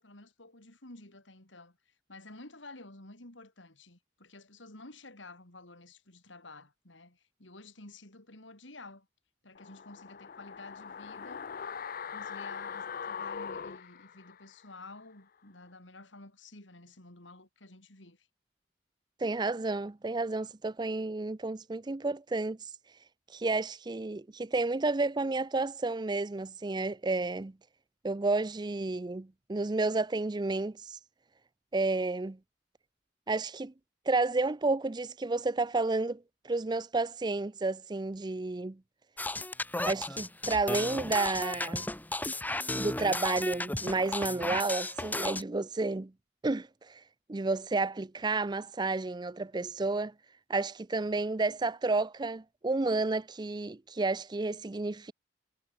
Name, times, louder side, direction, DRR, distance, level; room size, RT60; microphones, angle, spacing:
voice 1, 0.0-9.1 9.4-11.5 12.1-18.3, left 2 dB, 85° left, 5.0 m, -51 dB
sound 1, 9.5-14.7 15.0-15.1, left 6 dB, 50° left, 0.5 m, -41 dB
voice 2, 19.2-22.7 23.3-27.5 28.0-31.0 31.7-32.4 33.3-33.7 34.1-38.8 39.8-41.9 42.7-46.1 46.4-47.0 47.3-50.1 50.5-55.1, right 3 dB, 25° right, 0.5 m, -31 dB
sound 2, 39.2-45.4, left 2 dB, 10° left, 1.3 m, -34 dB
head